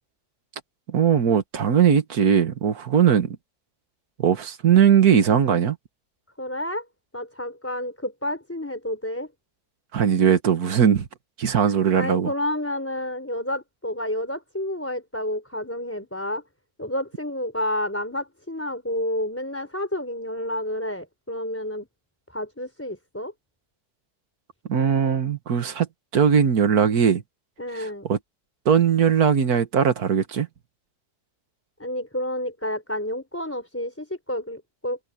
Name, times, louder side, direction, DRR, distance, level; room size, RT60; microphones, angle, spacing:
voice 1, 0.9-3.4 4.2-5.8 9.9-11.1 11.4-12.3 24.7-25.9 26.1-27.2 27.7-28.2 28.7-30.5, right 8 dB, 65° right, 1.9 m, -19 dB
voice 2, 6.4-6.8 7.1-9.3 11.9-16.4 16.8-21.9 22.3-23.3 27.6-28.0 31.8-35.0, left 1 dB, 10° left, 3.9 m, -30 dB
omnidirectional pair, 1.8 m